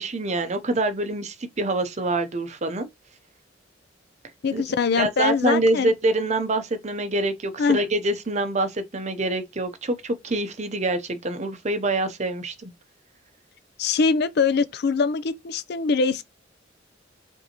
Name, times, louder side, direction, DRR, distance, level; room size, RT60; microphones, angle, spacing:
voice 1, 0.0-2.9 4.5-4.6 5.0-12.7, right 2 dB, 40° right, 0.7 m, -25 dB
voice 2, 4.4-5.9 7.6-7.8 13.8-16.2, left 5 dB, 60° left, 0.4 m, -23 dB
5.3 x 2.7 x 2.9 m
head